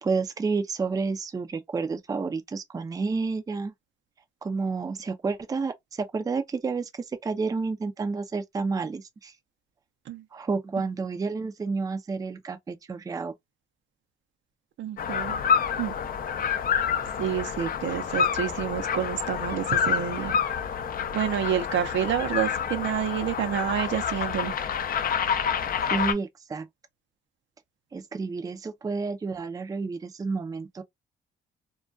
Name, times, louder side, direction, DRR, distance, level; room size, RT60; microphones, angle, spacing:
voice 1, 0.0-3.7 4.4-9.3 10.3-13.3 25.9-26.7 27.9-30.8, right 4 dB, 20° right, 0.4 m, -30 dB
voice 2, 14.8-15.4 15.8-15.9 17.2-20.4 21.1-24.5, right 10 dB, 70° right, 0.6 m, -29 dB
sound 1, 15.0-26.1, left 7 dB, 45° left, 0.4 m, -28 dB
2.2 x 2.2 x 2.5 m
cardioid pair, 90°, 20 cm